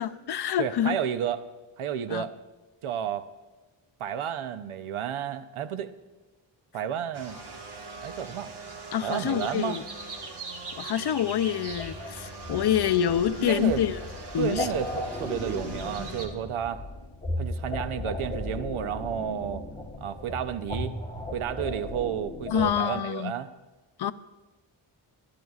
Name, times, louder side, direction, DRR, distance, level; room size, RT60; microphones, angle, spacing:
voice 1, 0.0-1.0 2.1-2.2 8.9-9.8 10.8-14.0 14.3-14.7 22.5-23.3 24.0-24.1, left 10 dB, 55° left, 12 dB, 0.5 m, -26 dB
voice 2, 0.6-1.4 1.8-2.3 2.8-3.3 4.0-5.9 6.7-7.4 8.0-8.5 9.0-9.8 13.4-13.8 14.4-16.8 17.4-19.6 20.0-20.9 21.3-23.5, right 9 dB, 80° right, 11 dB, 0.7 m, -31 dB
sound 1, 7.1-16.3, right 3 dB, 55° right, 1.5 m, -41 dB
sound 2, 11.7-22.7, left 1 dB, 15° left, 1.2 m, -36 dB
21.5 x 12.0 x 2.4 m, 1.2 s
wide cardioid pair, 140°, 48 cm